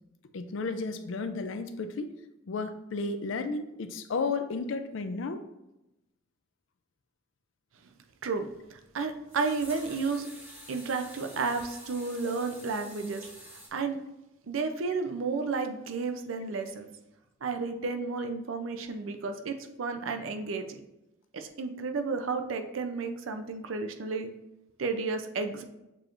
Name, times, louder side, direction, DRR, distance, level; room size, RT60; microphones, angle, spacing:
voice 1, 0.3-2.1 2.5-5.4, left 4 dB, 70° left, 9 dB, 0.4 m, -33 dB
voice 2, 8.2-10.3 10.7-13.2 13.7-14.0 14.5-16.9 17.4-20.8 21.3-24.3 24.8-25.6, right 4 dB, 85° right, 7 dB, 0.5 m, -32 dB
sound 1, 9.3-13.7, equal, 10° right, 1.0 m, -48 dB
6.9 x 3.0 x 2.5 m, 0.93 s
head